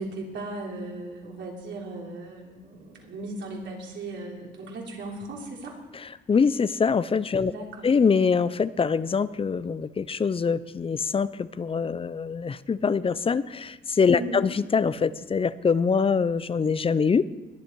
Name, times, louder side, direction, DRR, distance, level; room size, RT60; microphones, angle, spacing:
voice 1, 0.0-5.8 7.4-7.9 14.1-14.4, right 2 dB, 65° right, -1 dB, 3.5 m, -37 dB
voice 2, 6.3-7.5 7.8-17.3, left 5 dB, 30° left, 17 dB, 0.5 m, -24 dB
21.0 x 8.4 x 4.6 m, 1.3 s
cardioid pair, 90°, 20 cm